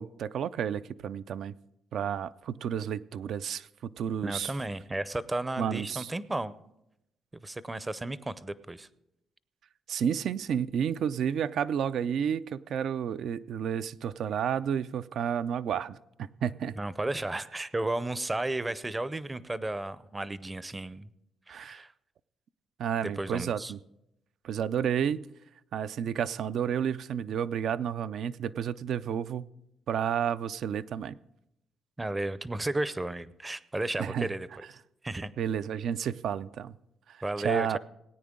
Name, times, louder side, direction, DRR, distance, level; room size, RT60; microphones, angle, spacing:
voice 1, 0.0-1.6 1.9-4.7 5.6-6.1 9.9-16.7 21.5-21.8 22.8-23.8 24.4-25.3 25.7-29.5 29.9-31.2 34.0-34.3 34.6-34.8 35.4-36.7 37.1-37.8, right 8 dB, 70° right, 15 dB, 0.3 m, -31 dB
voice 2, 4.2-6.6 7.3-8.9 16.7-21.1 21.5-21.9 23.2-23.7 32.0-34.5 35.0-35.3 37.2-37.8, right 2 dB, 15° right, 16 dB, 0.5 m, -33 dB
17.5 x 9.3 x 3.7 m, 0.85 s
cardioid pair, 90°, 0 cm